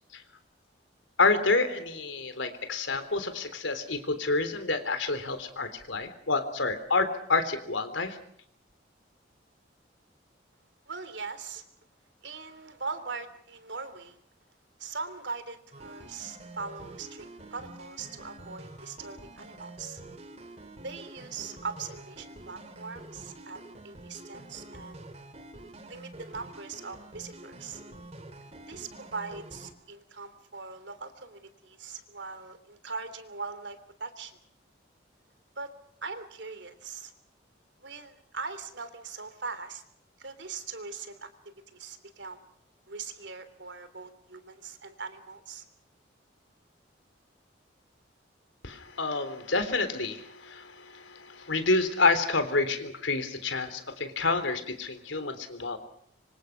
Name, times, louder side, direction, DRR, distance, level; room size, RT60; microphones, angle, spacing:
voice 1, 1.2-8.2 48.6-55.8, left 3 dB, 85° left, 10 dB, 3.7 m, -28 dB
voice 2, 10.9-11.6 12.2-14.2 14.8-20.0 20.8-25.0 25.9-27.8 28.7-34.4 35.5-35.7 36.0-37.1 37.8-39.8 40.2-41.3 41.7-42.4 42.9-45.6, right 4 dB, 70° right, 11 dB, 3.3 m, -41 dB
sound 1, 15.7-29.7, right 1 dB, 35° right, 2.9 m, -47 dB
26.0 x 25.5 x 6.0 m, 0.65 s
head